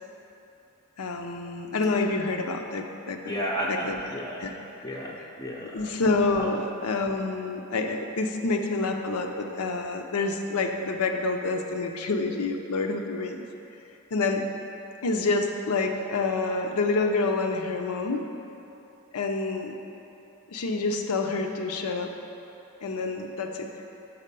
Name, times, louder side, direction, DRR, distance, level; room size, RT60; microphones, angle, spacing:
voice 1, 1.0-3.4 3.7-4.0 4.4-4.5 5.7-13.5 14.1-14.5 15.0-18.2 19.1-19.8 20.5-22.1 22.8-23.7, left 3 dB, 80° left, 4 dB, 0.6 m, -28 dB
voice 2, 3.3-4.5 4.8-5.8, equal, 15° left, -3 dB, 0.5 m, -32 dB
7.4 x 4.3 x 5.2 m, 3.0 s
head